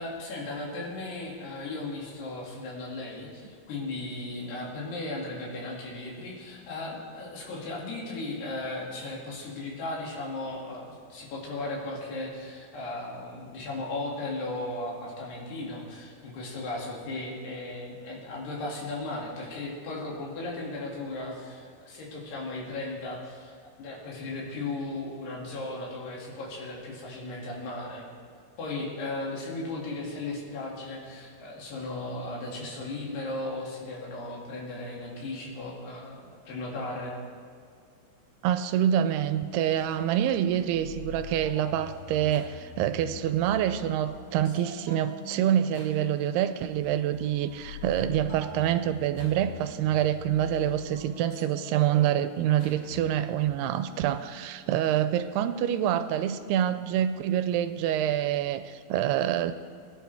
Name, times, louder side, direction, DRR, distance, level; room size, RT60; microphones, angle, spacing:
voice 1, 0.0-28.1 28.6-37.1, left 2 dB, 85° left, -4 dB, 4.7 m, -36 dB
voice 2, 38.4-59.5, right 11 dB, 90° right, 11 dB, 2.6 m, -26 dB
sound 1, 39.7-53.4, left 3 dB, 60° left, 4.1 m, -44 dB
21.5 x 11.0 x 3.6 m, 2.2 s
omnidirectional pair, 4.6 m